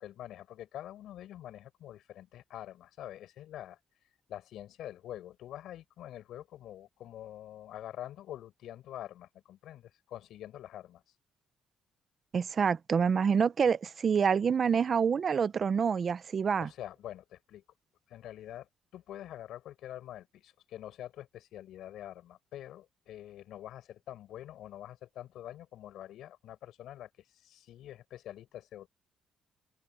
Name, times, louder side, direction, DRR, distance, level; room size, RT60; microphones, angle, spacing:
voice 1, 0.0-3.8 4.3-11.0 16.6-17.6 18.1-28.9, left 12 dB, 80° left, 7.2 m, -46 dB
voice 2, 12.3-16.7, right 6 dB, 45° right, 0.8 m, -27 dB
open air
cardioid pair, 90°, 0 cm